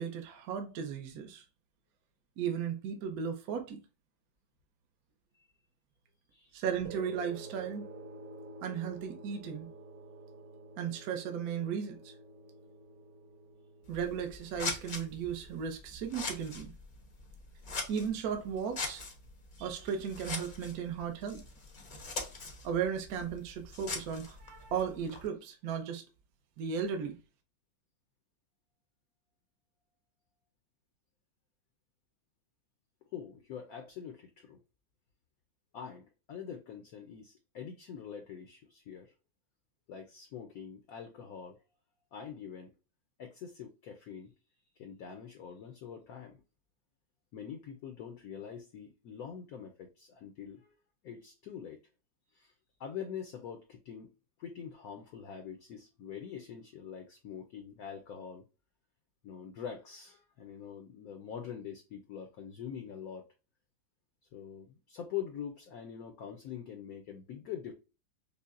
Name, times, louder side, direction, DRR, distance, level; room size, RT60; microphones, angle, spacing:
voice 1, 0.0-1.4 2.4-3.8 6.5-7.9 8.6-9.7 10.8-12.1 13.9-16.7 17.9-19.0 19.6-21.4 22.6-26.0 26.6-27.1, right 7 dB, 65° right, 1.0 m, -35 dB
voice 2, 6.3-6.6 33.1-34.6 35.7-39.1 39.9-41.6 42.1-42.7 43.2-44.3 44.8-46.4 47.3-50.7 51.0-51.8 52.3-52.5 52.8-54.1 54.4-58.4 59.2-63.3 64.3-67.7, left 8 dB, 70° left, 0.9 m, -44 dB
sound 1, 6.8-15.6, right 2 dB, 80° right, 1.5 m, -50 dB
Scissors, 13.8-25.3, left 3 dB, 50° left, 0.6 m, -43 dB
5.4 x 2.0 x 2.4 m
omnidirectional pair, 2.0 m